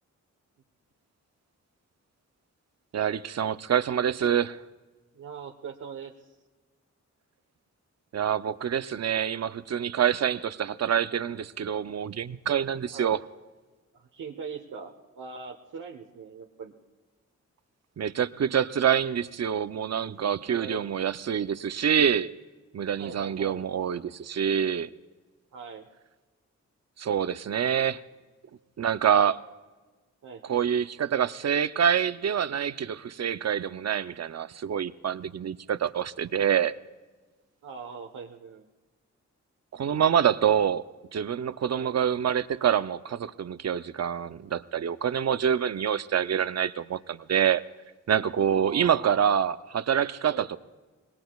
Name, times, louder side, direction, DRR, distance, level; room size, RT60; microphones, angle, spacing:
voice 1, 2.9-4.6 8.1-13.2 18.0-22.3 22.7-24.9 27.0-28.0 28.8-29.4 30.4-36.7 39.7-40.8 41.1-47.6 48.1-50.6, right 8 dB, 60° right, 13 dB, 0.6 m, -26 dB
voice 2, 5.1-6.3 10.4-10.5 12.9-13.2 13.9-16.7 20.5-20.9 23.0-23.7 25.5-25.9 30.2-30.4 37.6-38.6 41.7-41.9 48.5-49.3 50.3-50.5, right 5 dB, 80° right, 2 dB, 1.1 m, -41 dB
26.0 x 20.5 x 2.3 m, 1.3 s
wide cardioid pair, 105°, 30 cm